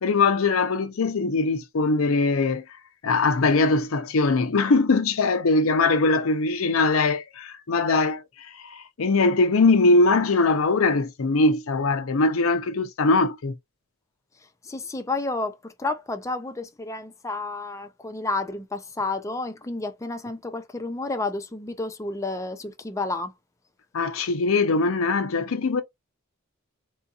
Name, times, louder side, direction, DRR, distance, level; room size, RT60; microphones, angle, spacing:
voice 1, 0.0-2.6 3.0-13.5 23.9-25.8, left 3 dB, 80° left, 0.6 m, -21 dB
voice 2, 14.6-23.3, left 3 dB, 15° left, 0.5 m, -31 dB
3.6 x 2.7 x 2.3 m
head